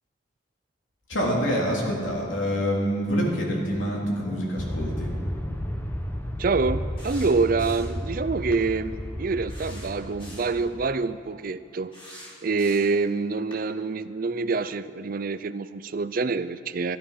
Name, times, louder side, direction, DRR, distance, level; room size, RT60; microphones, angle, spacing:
voice 1, 1.1-5.1, equal, 80° left, -2 dB, 3.1 m, -26 dB
Aircraft, 4.6-10.9, equal, 10° left, 0.9 m, -33 dB
voice 2, 6.4-11.9 12.4-17.0, right 4 dB, 45° right, 14 dB, 0.5 m, -26 dB
sound 1, 7.0-8.0 8.5-8.7 9.5-10.6 11.9-13.0 13.5-13.6, equal, 30° left, 2.8 m, -45 dB
13.5 x 12.5 x 5.7 m, 2.3 s
head